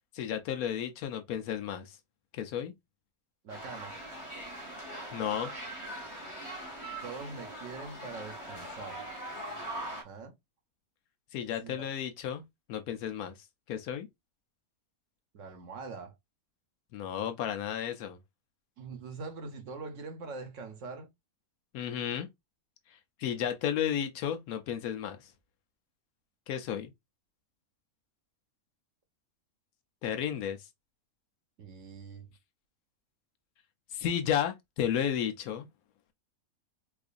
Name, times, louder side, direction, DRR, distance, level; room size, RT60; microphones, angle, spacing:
voice 1, 0.1-2.0 2.3-2.7 5.1-5.5 11.3-12.4 12.7-13.3 13.7-14.1 16.9-18.2 21.7-22.3 23.2-25.3 26.5-26.9 30.0-30.6 33.9-35.7, left 9 dB, 80° left, 1.1 m, -33 dB
voice 2, 3.4-4.0 7.0-9.0 9.9-10.3 11.6-11.9 15.3-16.1 18.8-21.1 31.6-32.3, right 4 dB, 60° right, 1.1 m, -43 dB
sound 1, 3.5-10.0, right 1 dB, 25° left, 1.1 m, -41 dB
4.6 x 2.4 x 2.4 m
omnidirectional pair, 1.5 m